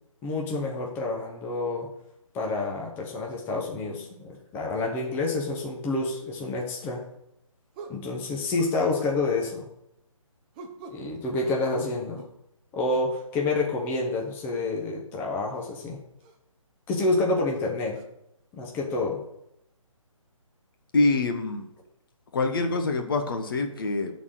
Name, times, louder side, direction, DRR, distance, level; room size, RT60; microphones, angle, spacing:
voice 1, 0.2-1.9 2.3-7.0 7.9-9.6 10.9-12.2 12.7-16.0 16.9-18.0 18.5-19.2, left 3 dB, 10° left, 0 dB, 1.0 m, -28 dB
sound 1, 6.7-6.8 7.7-8.1 8.6-9.2 10.5-11.1 11.7-12.4 12.9-13.1 14.7-14.9 15.5-15.7 16.2-16.4 17.1-17.2 17.9-18.0, right 4 dB, 15° right, 0.6 m, -45 dB
voice 2, 20.9-21.7 22.3-24.1, left 3 dB, 40° left, 5 dB, 1.1 m, -25 dB
11.0 x 4.1 x 6.4 m, 0.79 s
figure-of-eight pair, 140°, 17 cm